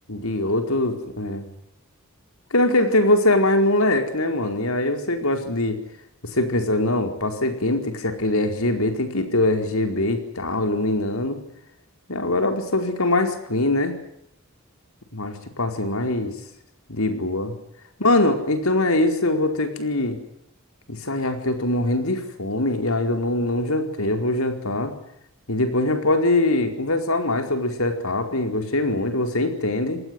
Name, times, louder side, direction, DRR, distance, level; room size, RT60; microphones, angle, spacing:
voice 1, 0.1-1.5 2.5-5.8 6.2-11.4 12.1-13.9 15.1-16.4 16.9-17.5 18.0-20.2 20.9-24.9 25.5-30.0, left 2 dB, 85° left, 6 dB, 4.7 m, -22 dB
28.0 x 19.5 x 7.9 m, 0.77 s
head